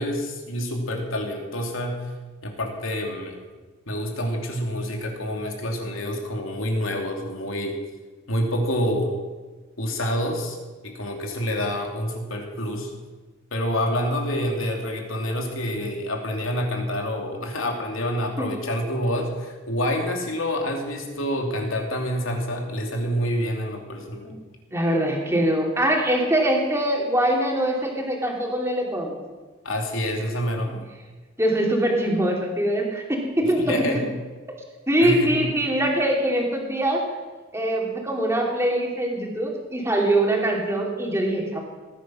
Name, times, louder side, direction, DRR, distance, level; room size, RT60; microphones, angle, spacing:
voice 1, 0.0-2.1 2.4-3.4 3.9-7.8 8.3-9.2 9.8-10.6 10.8-12.9 13.5-24.4 29.6-30.8 33.4-34.0 35.0-35.3 35.6-35.7, equal, 90° left, 2 dB, 2.8 m, -27 dB
voice 2, 24.7-29.1 31.4-34.0 34.9-37.0 37.5-41.6, right 1 dB, 15° right, 0 dB, 2.7 m, -23 dB
19.0 x 9.9 x 6.3 m, 1.3 s
head